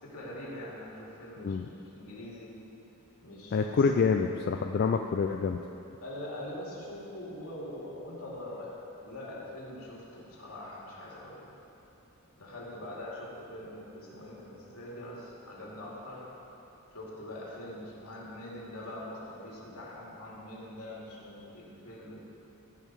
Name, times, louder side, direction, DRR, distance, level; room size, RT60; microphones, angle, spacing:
voice 1, 0.0-2.6 3.2-3.8 6.0-8.8 9.0-11.5 12.4-16.3 16.9-22.2, left 1 dB, 80° left, -5 dB, 2.5 m, -43 dB
voice 2, 3.5-5.6, left 5 dB, 45° left, 5 dB, 0.3 m, -27 dB
15.5 x 5.5 x 4.7 m, 2.9 s
head